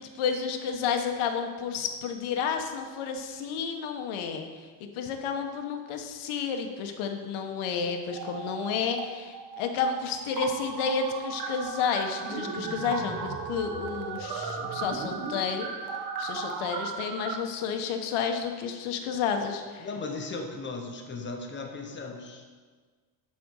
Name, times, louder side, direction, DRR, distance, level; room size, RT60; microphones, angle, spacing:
voice 1, 0.0-15.7 16.2-19.9, left 6 dB, 75° left, 5 dB, 1.3 m, -31 dB
sound 1, 8.1-9.1 9.3-17.3, right 5 dB, 45° right, 1.1 m, -36 dB
voice 2, 19.8-22.4, left 3 dB, 25° left, 3 dB, 0.9 m, -37 dB
11.0 x 4.3 x 6.4 m, 1.5 s
cardioid pair, 170°, 49 cm